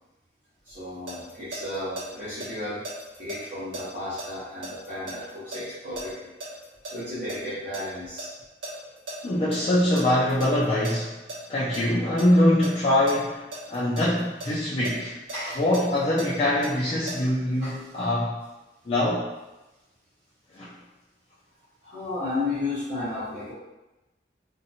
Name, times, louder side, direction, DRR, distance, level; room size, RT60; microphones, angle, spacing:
voice 1, 0.6-2.8 3.2-6.3 6.8-8.3 15.3-15.6 17.6-17.7 21.8-23.5, left 2 dB, 40° right, -14 dB, 0.9 m, -33 dB
sound 1, 0.7-2.0 2.4-7.0 7.3-9.2 9.5-9.6 10.0-11.4 11.7-12.3 12.6-14.5 14.8-17.1, right 2 dB, 80° right, 1.0 m, -37 dB
voice 2, 9.2-11.2 11.5-15.2 15.6-18.4 18.9-19.3 20.5-20.7, left 1 dB, 35° left, -8 dB, 0.4 m, -23 dB
2.6 x 2.2 x 2.7 m, 1.0 s
head